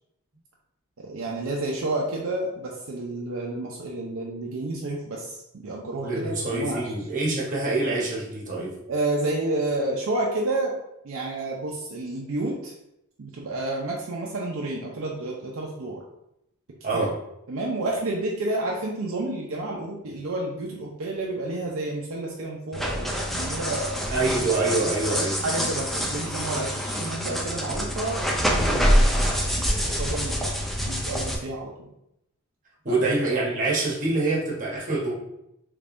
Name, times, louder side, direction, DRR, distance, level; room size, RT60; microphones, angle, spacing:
voice 1, 1.0-6.8 8.9-10.7 11.0-12.8 13.2-16.0 16.9-17.1 17.5-24.0 25.4-31.9 32.9-33.0, right 2 dB, 65° right, -2 dB, 0.5 m, -30 dB
voice 2, 6.0-8.7 16.8-17.1 24.1-25.4 32.8-35.1, right 2 dB, 40° right, -4 dB, 1.0 m, -25 dB
sound 1, 22.7-31.4, equal, ahead, 0.4 m, -26 dB
3.5 x 3.3 x 2.5 m, 0.82 s
head